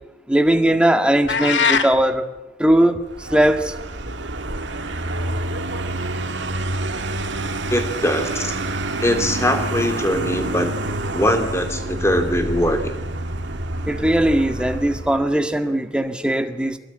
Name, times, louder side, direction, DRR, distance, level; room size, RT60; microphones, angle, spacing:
voice 1, 0.3-2.3 2.6-3.7 13.9-16.8, right 1 dB, 5° right, 6 dB, 1.7 m, -19 dB
sound 1, 1.3-1.9, left 6 dB, 75° left, 1.9 m, -19 dB
Vehicle, 3.1-15.3, right 2 dB, 70° right, 2.3 m, -27 dB
voice 2, 7.7-8.5 9.0-10.7 11.1-12.9, left 1 dB, 15° left, 6 dB, 3.1 m, -21 dB
24.5 x 20.5 x 9.9 m, 0.98 s
head